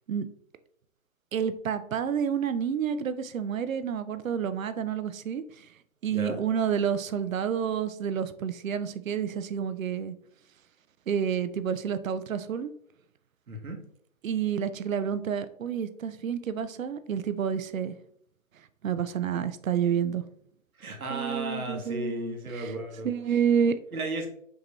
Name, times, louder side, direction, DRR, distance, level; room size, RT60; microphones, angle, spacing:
voice 1, 1.3-5.7 6.0-10.1 11.1-12.7 14.2-17.9 18.8-20.2 21.1-22.8 23.0-23.8, right 7 dB, 70° right, 12 dB, 0.5 m, -29 dB
voice 2, 13.5-13.8 20.8-23.4 23.9-24.3, right 2 dB, 85° right, 2 dB, 1.2 m, -35 dB
5.2 x 2.9 x 3.0 m, 0.68 s
figure-of-eight pair, 145°, 42 cm